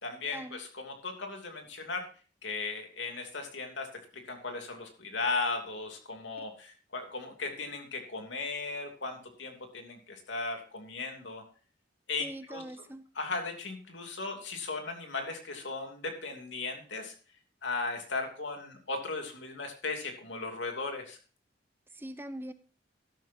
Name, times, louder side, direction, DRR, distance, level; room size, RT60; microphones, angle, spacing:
voice 1, 0.0-2.0 2.4-3.9 4.1-11.4 12.1-12.6 13.1-17.1 17.6-21.2, left 3 dB, 85° left, 3 dB, 2.9 m, -37 dB
voice 2, 12.2-13.1 21.9-22.5, right 1 dB, 10° right, 11 dB, 0.7 m, -42 dB
13.0 x 12.0 x 2.7 m, 0.37 s
head